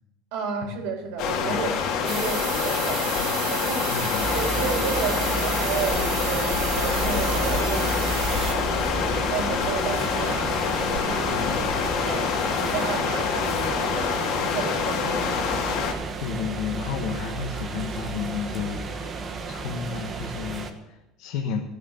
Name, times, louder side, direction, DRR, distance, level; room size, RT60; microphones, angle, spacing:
voice 1, 0.3-4.0 4.3-10.6 11.0-11.6 12.0-12.4 12.7-15.3, right 6 dB, 80° right, 1 dB, 3.7 m, -32 dB
sound 1, 1.2-15.9, left 6 dB, 60° left, 2.3 m, -26 dB
sound 2, 2.1-8.5, right 16 dB, 55° right, 0.5 m, -33 dB
voice 2, 3.9-4.7 11.3-11.6 16.2-21.6, left 7 dB, 75° left, 2 dB, 1.4 m, -32 dB
sound 3, 4.2-20.7, right 3 dB, 25° right, 1.3 m, -32 dB
14.5 x 9.5 x 6.6 m, 0.93 s
cardioid pair, 170°, 0 cm